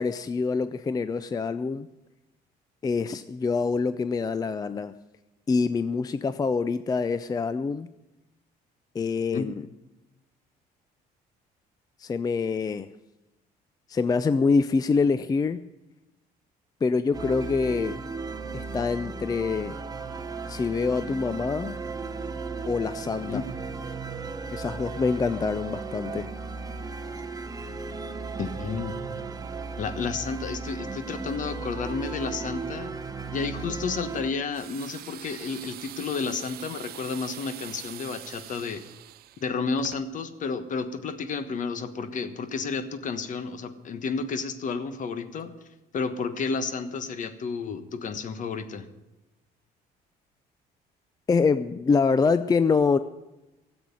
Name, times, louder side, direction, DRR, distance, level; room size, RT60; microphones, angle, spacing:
voice 1, 0.0-1.9 2.8-4.9 5.5-7.9 8.9-9.7 12.0-12.9 13.9-15.6 16.8-18.0 18.5-19.8 20.5-21.7 22.6-23.4 24.5-26.3 51.3-53.0, left 4 dB, 20° left, 13 dB, 0.4 m, -25 dB
sound 1, 17.1-34.3, right 4 dB, 20° right, 1.0 m, -36 dB
voice 2, 28.4-28.9 29.8-32.9 33.3-38.8 39.4-45.5 45.9-48.9, left 5 dB, 50° left, 11 dB, 1.3 m, -31 dB
sound 2, 34.5-40.0, right 14 dB, 65° right, 0.6 m, -43 dB
14.5 x 7.8 x 9.7 m, 1.0 s
cardioid pair, 110°, 17 cm